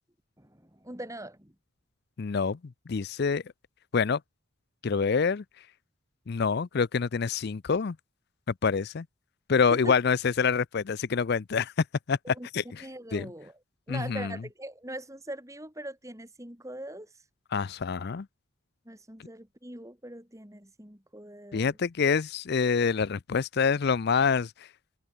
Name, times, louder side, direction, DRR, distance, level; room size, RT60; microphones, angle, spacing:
voice 1, 0.4-1.5 9.7-9.9 12.2-12.5 12.8-13.5 13.9-17.1 18.8-21.8, right 1 dB, 15° right, 3.4 m, -41 dB
voice 2, 2.2-2.6 2.9-3.4 3.9-4.2 4.8-5.4 6.3-8.0 8.6-9.1 9.5-11.7 12.1-12.8 13.1-13.3 13.9-14.4 17.5-18.3 21.5-24.5, left 5 dB, 50° left, 0.4 m, -26 dB
head